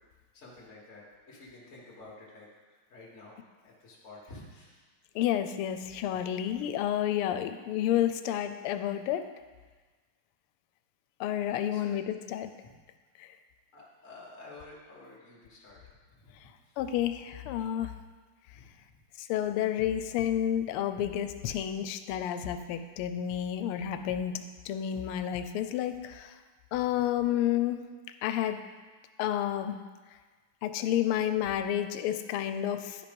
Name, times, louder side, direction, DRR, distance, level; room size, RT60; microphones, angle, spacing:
voice 1, 0.3-2.5 2.9-3.4 3.6-4.8 11.7-11.9 12.6-12.7 13.7-15.8 16.2-16.8 18.5-18.7 27.0-27.1, left 2 dB, 40° left, -5 dB, 1.7 m, -50 dB
voice 2, 5.1-9.2 11.2-12.5 13.2-13.3 16.8-17.9 19.2-26.3 26.7-27.8 28.2-28.6 29.2-29.8 30.6-33.1, left 11 dB, 90° left, 10 dB, 1.5 m, -30 dB
10.5 x 5.0 x 5.2 m, 1.4 s
omnidirectional pair, 2.4 m